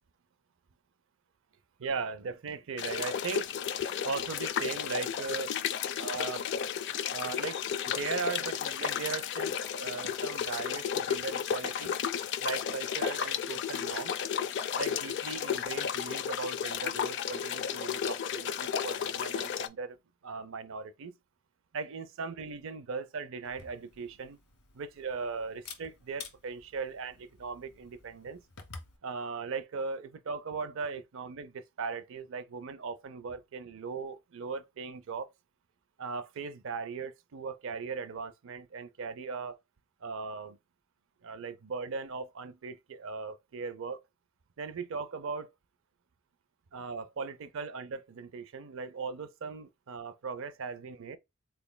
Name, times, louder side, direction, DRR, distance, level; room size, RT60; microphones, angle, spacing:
voice 1, 1.8-3.5 4.0-5.5 6.0-6.5 7.1-12.0 12.3-14.1 14.8-20.0 20.2-21.1 21.7-24.4 24.7-28.4 29.0-35.3 36.0-39.6 40.0-40.6 41.2-44.0 44.6-45.5 46.7-51.2, right 5 dB, 65° right, 0.5 m, -38 dB
sound 1, 2.8-19.7, left 8 dB, 55° left, 0.4 m, -33 dB
Camera, 23.4-29.0, left 5 dB, 80° left, 1.3 m, -51 dB
4.1 x 3.3 x 2.2 m
head